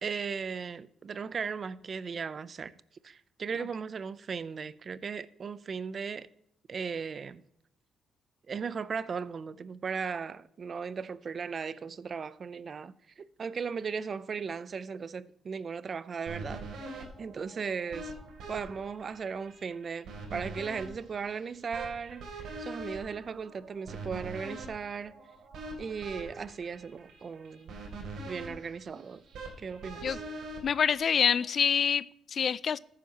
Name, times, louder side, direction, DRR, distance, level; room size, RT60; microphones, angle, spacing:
voice 1, 0.0-2.7 3.0-6.3 6.7-7.4 8.5-18.1 18.5-25.2 25.8-27.8 28.2-29.2 29.6-30.2, right 6 dB, 45° right, 0.5 m, -37 dB
sound 1, 16.3-31.5, right 2 dB, 75° right, 2.9 m, -44 dB
voice 2, 30.6-32.8, left 7 dB, 50° left, 0.4 m, -26 dB
13.5 x 9.9 x 2.9 m
cardioid pair, 90°, 0 cm